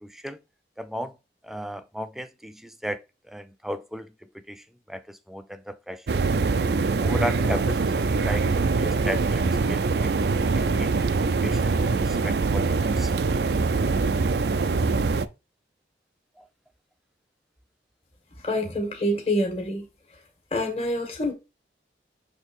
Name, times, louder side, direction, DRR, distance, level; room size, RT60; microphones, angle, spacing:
voice 1, 0.0-0.4 0.8-1.1 1.4-3.0 3.3-4.1 4.3-6.4 7.0-10.1 10.5-10.9 11.4-13.1 16.4-16.5, equal, ahead, 0.4 m, -35 dB
sound 1, 6.1-15.3, right 4 dB, 70° right, 0.5 m, -23 dB
voice 2, 18.3-19.9 20.5-21.3, left 1 dB, 35° left, 1.6 m, -26 dB
6.4 x 3.4 x 4.4 m
head